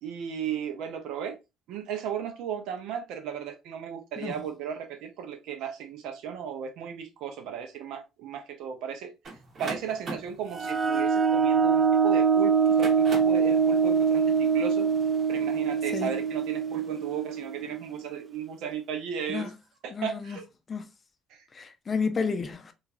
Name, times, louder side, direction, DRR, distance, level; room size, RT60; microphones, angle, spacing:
voice 1, 0.0-1.3 1.7-14.9 15.3-19.5 19.8-20.5 21.3-21.5, right 8 dB, 85° right, 0.6 m, -35 dB
sound 1, 9.2-12.0 12.6-13.5, right 3 dB, 50° right, 0.9 m, -39 dB
sound 2, 10.5-18.0, right 6 dB, 35° right, 0.4 m, -24 dB
voice 2, 19.9-20.4 20.7-20.9 21.5-22.7, left 5 dB, 35° left, 0.5 m, -31 dB
3.0 x 2.4 x 2.4 m
cardioid pair, 100°, 0 cm